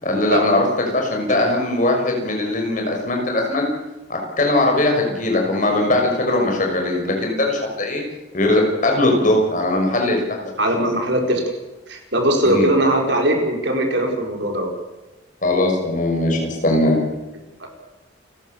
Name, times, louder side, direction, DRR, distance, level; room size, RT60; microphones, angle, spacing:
voice 1, 0.0-3.7 4.1-8.0 8.3-10.2 10.4-10.5 12.4-12.7 15.4-17.0, left 2 dB, 40° left, 1 dB, 6.3 m, -20 dB
voice 2, 10.6-11.4 11.9-14.7 17.6-17.7, right 1 dB, 60° right, 2 dB, 4.9 m, -20 dB
29.5 x 15.0 x 7.2 m, 1.1 s
head